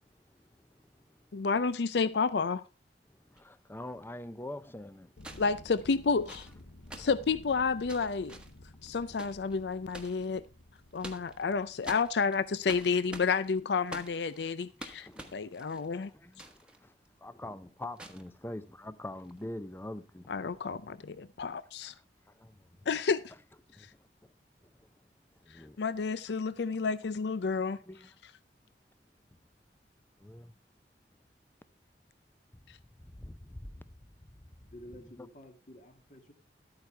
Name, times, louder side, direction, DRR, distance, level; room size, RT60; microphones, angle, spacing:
voice 1, 1.3-2.6 5.4-6.5 7.0-8.4 8.8-10.5 10.9-16.1 20.3-21.9 22.9-23.2 25.8-27.8, left 5 dB, 70° left, 0.5 m, -30 dB
voice 2, 3.3-5.1 6.9-7.1 15.0-15.3 15.9-16.9 17.2-20.3 21.8-22.0 22.3-22.6 23.7-23.9 25.4-25.8 27.9-28.1 30.2-30.5 33.0-33.9 34.9-35.3, left 1 dB, 15° left, 0.6 m, -44 dB
sound 1, 3.3-3.4 5.2-10.2 10.8-11.5 11.8-16.8 17.0-17.1 18.0-18.3 19.2-19.4, right 1 dB, 5° right, 1.2 m, -48 dB
sound 2, 5.2-13.0, left 1 dB, 85° left, 1.1 m, -54 dB
voice 3, 34.6-36.3, equal, 45° left, 2.0 m, -51 dB
12.5 x 8.9 x 3.4 m
head